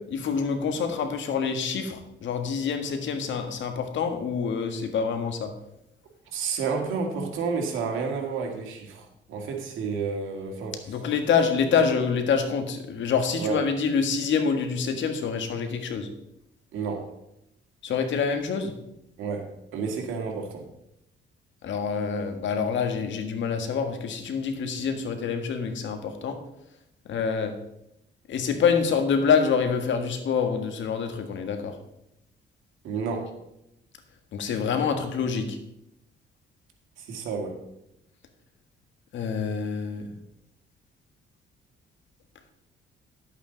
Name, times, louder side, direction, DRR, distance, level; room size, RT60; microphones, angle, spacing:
voice 1, 0.1-5.5 10.9-16.1 17.8-18.7 21.6-26.4 27.1-27.5 28.3-31.8 34.3-35.6 39.1-40.1, left 6 dB, 70° left, 6 dB, 1.6 m, -26 dB
voice 2, 6.3-10.8 13.4-13.6 16.7-17.1 19.2-20.7 32.8-33.3 37.0-37.6, right 5 dB, 85° right, 3 dB, 2.0 m, -30 dB
11.5 x 8.2 x 4.0 m, 0.83 s
cardioid pair, 90°, 20 cm